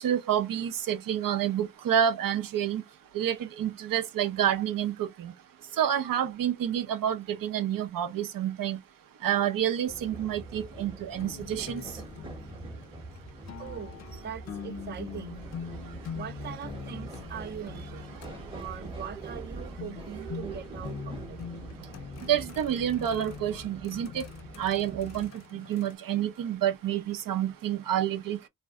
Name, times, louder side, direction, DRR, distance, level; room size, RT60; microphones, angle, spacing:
voice 1, 0.0-2.8 3.1-5.3 5.8-8.8 9.2-11.8 22.3-24.2 24.6-28.5, right 10 dB, 80° right, 0.6 m, -28 dB
sound 1, 9.9-25.3, right 3 dB, 15° right, 0.8 m, -43 dB
sound 2, 11.2-25.9, left 7 dB, 55° left, 0.5 m, -44 dB
voice 2, 13.6-15.5 16.1-18.1 18.5-21.4, right 8 dB, 30° right, 0.4 m, -41 dB
2.6 x 2.1 x 3.5 m
cardioid pair, 100°, 33 cm